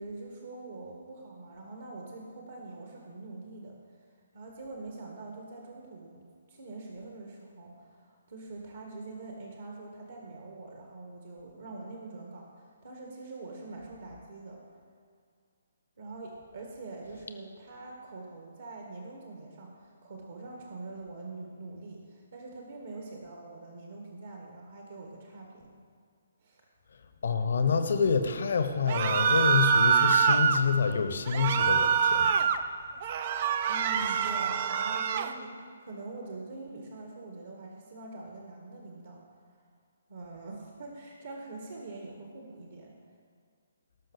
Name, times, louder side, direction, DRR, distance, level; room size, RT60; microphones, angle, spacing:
voice 1, 0.0-3.8 4.3-14.6 16.0-25.7 26.4-26.6 33.7-39.2 40.1-43.0, right 3 dB, 60° right, 0 dB, 1.8 m, -44 dB
voice 2, 27.2-32.3, left 5 dB, 55° left, 8 dB, 1.1 m, -27 dB
sound 1, 28.9-30.6 31.3-32.6 33.0-35.3, right 7 dB, 40° right, 0.6 m, -25 dB
18.5 x 6.2 x 5.1 m, 2.1 s
figure-of-eight pair, 135°, 0 cm